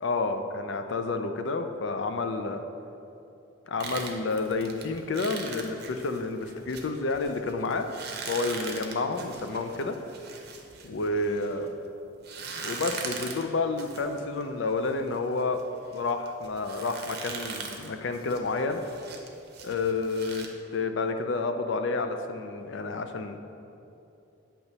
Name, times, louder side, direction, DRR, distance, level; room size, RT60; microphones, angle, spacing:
voice 1, 0.0-2.6 3.7-7.9 8.3-10.0 10.8-11.7 12.6-15.6 15.9-18.8 19.6-20.5 20.7-23.4, left 3 dB, 65° left, 7 dB, 0.4 m, -30 dB
sound 1, 3.8-11.7 12.2-20.5, right 5 dB, 50° right, 0.7 m, -41 dB
8.1 x 3.0 x 5.3 m, 2.7 s
head